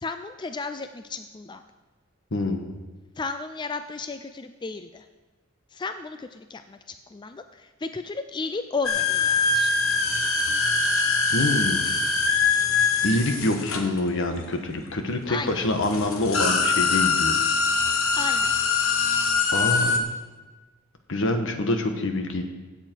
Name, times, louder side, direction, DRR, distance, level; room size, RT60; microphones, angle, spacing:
voice 1, 0.0-1.6 3.2-5.0 5.7-6.8 7.1-7.4 7.8-9.7 15.3-15.6 18.1-18.5, left 4 dB, 20° left, 9 dB, 0.4 m, -33 dB
voice 2, 2.3-2.8 11.3-11.9 13.0-17.5 19.5-20.1 21.1-22.5, left 1 dB, 65° left, 5 dB, 1.3 m, -26 dB
sound 1, 8.8-14.6 15.4-15.5 15.8-20.0, left 4 dB, 90° left, 1.2 m, -23 dB
16.5 x 7.6 x 4.6 m, 1.3 s
head